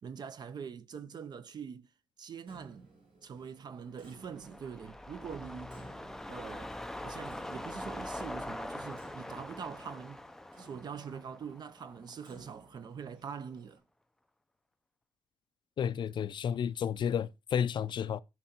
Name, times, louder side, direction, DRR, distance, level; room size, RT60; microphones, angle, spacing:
voice 1, 0.0-1.9 2.2-2.9 3.2-5.8 6.2-10.2 10.6-13.8, right 7 dB, 50° right, 0.8 m, -44 dB
Clock, 2.5-13.8, right 2 dB, 85° right, 5.8 m, -59 dB
sound 1, 4.0-12.5 12.8-12.9, left 1 dB, 5° left, 0.5 m, -43 dB
voice 2, 15.8-18.2, left 8 dB, 60° left, 0.5 m, -31 dB
14.0 x 5.4 x 4.4 m
wide cardioid pair, 160°, 9 cm